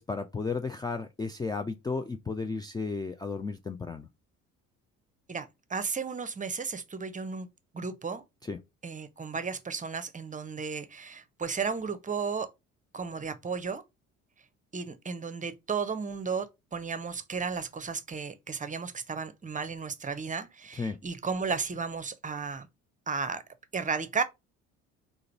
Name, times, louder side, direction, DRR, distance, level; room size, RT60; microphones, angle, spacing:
voice 1, 0.0-4.1 8.4-8.6 20.7-21.0, left 4 dB, 10° left, 0.4 m, -34 dB
voice 2, 5.3-7.5 7.7-8.2 8.8-12.5 12.9-13.8 14.7-22.7 23.1-23.4 23.7-24.2, right 5 dB, 20° right, 0.7 m, -34 dB
3.8 x 2.6 x 4.4 m
figure-of-eight pair, 50°, 39 cm